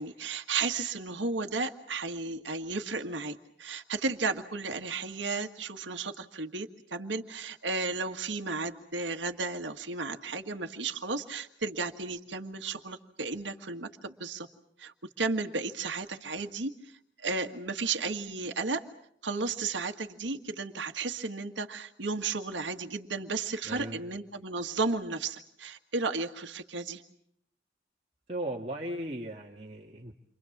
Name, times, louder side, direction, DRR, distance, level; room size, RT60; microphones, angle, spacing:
voice 1, 0.0-14.5 14.8-18.8 19.2-27.0, right 3 dB, 85° right, 5 dB, 1.7 m, -34 dB
voice 2, 23.7-24.0 28.3-30.1, right 1 dB, 35° right, -1 dB, 2.0 m, -37 dB
29.0 x 25.0 x 7.3 m, 0.71 s
head